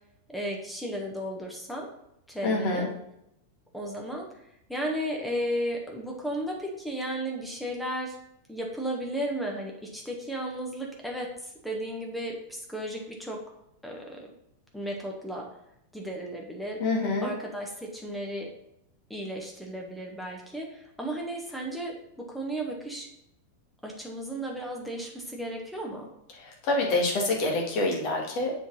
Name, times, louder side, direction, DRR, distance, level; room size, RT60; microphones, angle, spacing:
voice 1, 0.3-1.9 2.3-2.9 3.7-4.3 4.7-8.2 8.5-11.3 11.6-13.4 13.8-14.3 14.7-15.5 15.9-16.8 17.2-18.5 19.1-23.1 23.8-26.1, right 1 dB, ahead, -1 dB, 1.5 m, -34 dB
voice 2, 2.4-2.9 16.8-17.3 26.6-28.5, left 2 dB, 40° left, 0 dB, 2.1 m, -26 dB
7.3 x 4.6 x 5.5 m, 0.80 s
figure-of-eight pair, 90°, 0 cm